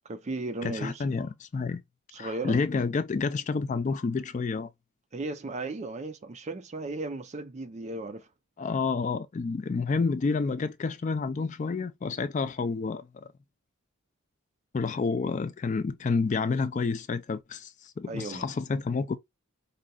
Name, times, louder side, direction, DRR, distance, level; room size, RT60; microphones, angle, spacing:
voice 1, 0.1-1.1 2.1-2.6 5.1-8.3 18.1-18.4, right 2 dB, 30° right, 0.4 m, -35 dB
voice 2, 0.6-1.8 2.2-4.7 8.6-13.3 14.7-19.2, left 4 dB, 35° left, 0.3 m, -29 dB
5.0 x 2.7 x 2.2 m
head